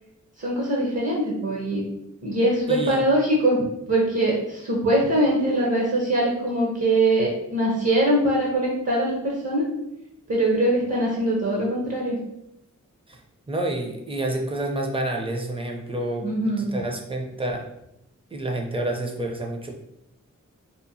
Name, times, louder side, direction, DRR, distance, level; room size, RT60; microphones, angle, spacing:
voice 1, 0.4-1.8 2.2-9.7 10.3-12.2 16.2-16.7, right 1 dB, 55° right, -3 dB, 0.8 m, -22 dB
voice 2, 2.7-3.0 13.1-13.2 13.5-16.3 16.6-17.7 18.3-19.8, right 1 dB, 15° right, 2 dB, 0.5 m, -28 dB
2.9 x 2.0 x 2.7 m, 0.83 s
cardioid pair, 50°, 31 cm